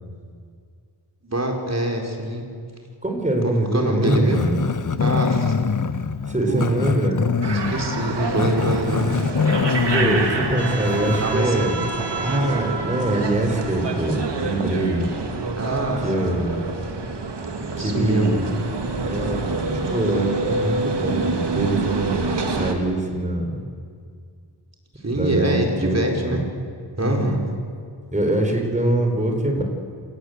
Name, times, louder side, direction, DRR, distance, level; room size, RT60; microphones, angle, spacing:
voice 1, 1.2-2.4 3.7-4.4 5.0-5.5 6.5-6.6 7.7-9.1 11.2-11.6 15.6-16.3 17.8-18.3 25.0-26.4 27.0-27.4 29.6-29.7, right 1 dB, 35° right, 1 dB, 4.6 m, -24 dB
voice 2, 3.0-4.6 6.3-7.2 9.9-11.7 12.2-15.1 16.0-16.6 17.8-18.5 19.0-23.6 25.1-26.5 27.0-27.4 28.1-29.6, right 1 dB, 15° right, 3 dB, 4.6 m, -24 dB
Growling, 4.0-11.4, left 5 dB, 45° left, 1.0 m, -24 dB
sound 1, 7.4-22.7, right 3 dB, 70° right, 2.4 m, -27 dB
27.0 x 18.5 x 8.2 m, 2.2 s
wide cardioid pair, 80°, 43 cm